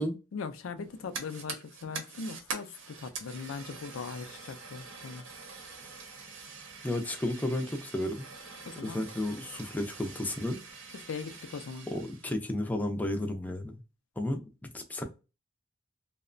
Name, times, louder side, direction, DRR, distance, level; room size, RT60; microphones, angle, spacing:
voice 1, 0.3-5.2 8.7-9.0 10.9-11.9, left 5 dB, 80° left, 0.4 m, -40 dB
Fire, 0.8-12.3, right 4 dB, 70° right, 0.7 m, -45 dB
voice 2, 6.8-8.3 8.8-10.6 11.9-13.8 14.2-14.4 14.7-15.0, left 1 dB, 10° left, 0.4 m, -32 dB
2.8 x 2.1 x 2.4 m
head